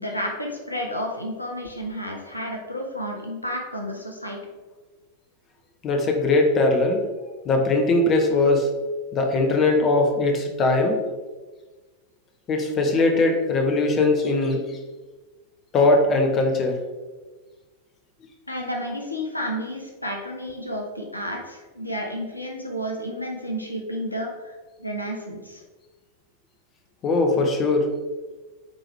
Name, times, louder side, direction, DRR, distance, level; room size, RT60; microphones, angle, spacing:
voice 1, 0.0-4.4 18.5-25.6, equal, 85° left, 1 dB, 1.0 m, -31 dB
voice 2, 5.8-7.0 7.4-8.7 9.1-11.0 12.5-14.8 15.7-16.8 27.0-27.9, left 2 dB, 30° left, 3 dB, 1.0 m, -20 dB
8.7 x 3.8 x 3.4 m, 1.3 s
figure-of-eight pair, 90°, 0 cm